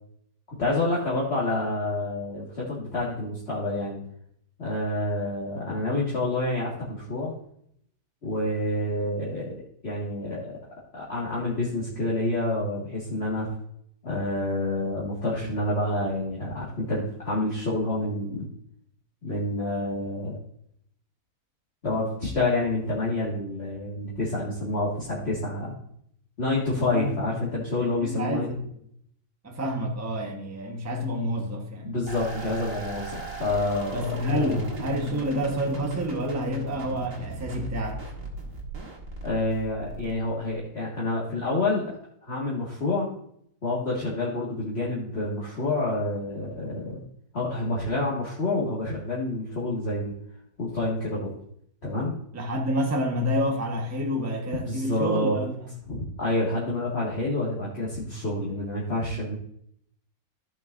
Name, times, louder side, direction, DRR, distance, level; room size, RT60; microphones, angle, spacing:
voice 1, 0.6-4.0 4.6-7.3 8.2-9.6 9.8-10.6 10.9-13.5 14.0-18.5 19.2-20.4 21.8-25.8 26.4-28.5 31.8-34.0 34.3-34.6 39.2-42.0 42.2-43.1 43.6-47.0 47.3-50.1 50.6-51.3 51.8-52.1 54.7-55.4 55.9-59.3, left 2 dB, 40° left, -6 dB, 2.1 m, -28 dB
voice 2, 26.8-27.4 27.8-28.6 29.4-32.0 33.9-38.0 52.3-55.7, equal, 10° right, 1 dB, 1.0 m, -29 dB
sound 1, 32.1-40.5, right 2 dB, 50° right, 2.0 m, -38 dB
15.0 x 6.0 x 2.6 m, 0.68 s
omnidirectional pair, 1.8 m